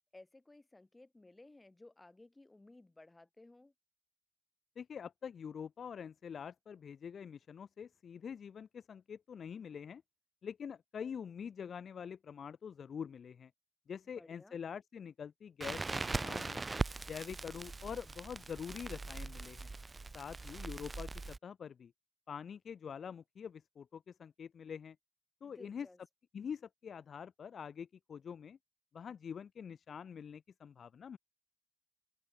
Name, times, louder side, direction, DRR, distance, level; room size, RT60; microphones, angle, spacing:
voice 1, 0.1-3.7 14.1-14.6 25.4-26.0, left 2 dB, 15° left, 3.3 m, -58 dB
voice 2, 4.8-10.0 10.4-13.5 13.9-16.6 17.1-19.7 20.1-21.9 22.3-25.0 25.4-25.9 26.3-28.6 28.9-31.2, left 7 dB, 60° left, 0.4 m, -45 dB
Crackle, 15.6-21.4, right 3 dB, 25° right, 0.3 m, -40 dB
wide cardioid pair, 155°, 0 cm